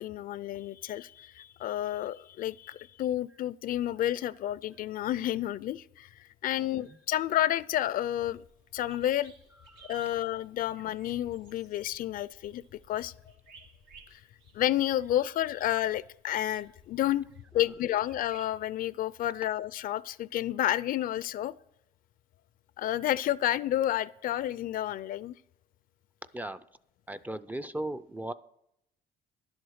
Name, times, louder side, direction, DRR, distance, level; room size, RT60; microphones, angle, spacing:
voice 1, 0.0-6.1 6.4-8.4 8.7-9.3 9.9-13.1 14.1-14.2 14.5-17.3 17.5-21.5 22.8-25.3, left 12 dB, 55° left, 0.4 m, -30 dB
voice 2, 6.6-7.0 9.6-10.0 10.3-10.4 17.6-17.7 26.3-26.6 27.1-28.3, right 1 dB, 10° right, 0.4 m, -38 dB
sound 1, 8.1-18.5, right 5 dB, 85° right, 1.6 m, -58 dB
11.0 x 7.9 x 6.4 m
cardioid pair, 110°, 17 cm